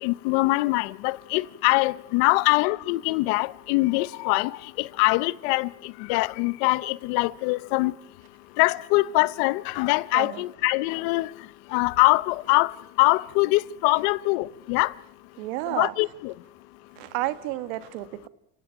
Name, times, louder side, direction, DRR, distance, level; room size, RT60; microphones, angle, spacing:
voice 1, 0.0-5.7 6.1-7.9 8.6-11.3 11.7-12.7 13.0-14.9 15.7-16.3, left 23 dB, 85° left, 0.9 m, -23 dB
voice 2, 15.4-15.9 17.0-18.3, right 17 dB, 85° right, 1.6 m, -31 dB
29.0 x 17.5 x 9.1 m
supercardioid pair, 95°, 29 cm